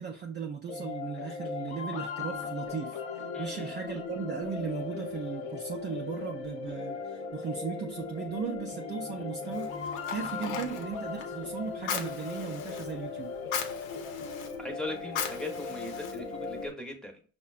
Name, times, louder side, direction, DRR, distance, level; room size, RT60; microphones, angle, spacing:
voice 1, 0.0-13.3, right 6 dB, 25° right, 1 dB, 0.5 m, -37 dB
sound 1, 0.7-16.7, left 5 dB, 65° left, 0.9 m, -38 dB
voice 2, 3.3-3.7 14.6-17.2, left 1 dB, ahead, 2 dB, 0.8 m, -39 dB
Fire, 9.5-16.7, left 7 dB, 90° left, 0.7 m, -40 dB
5.5 x 2.2 x 2.4 m, 0.40 s
supercardioid pair, 100°, 40 cm